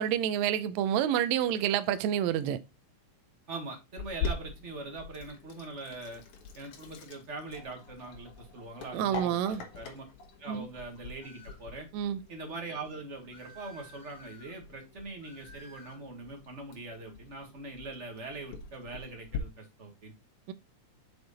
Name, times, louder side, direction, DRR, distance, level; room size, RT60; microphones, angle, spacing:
voice 1, 0.0-2.6 8.9-9.6 10.5-10.7 11.9-12.2 20.5-20.6, right 10 dB, 75° right, 1.8 m, -28 dB
voice 2, 3.5-6.2 6.5-10.0 10.4-11.9 12.3-20.1, right 3 dB, 35° right, 1.2 m, -42 dB
Sink (filling or washing), 4.0-19.4, left 4 dB, 80° left, 2.7 m, -44 dB
sound 1, 11.2-11.7 13.3-14.5 15.2-16.0, left 1 dB, 10° left, 3.5 m, -53 dB
6.1 x 5.0 x 4.0 m
omnidirectional pair, 3.4 m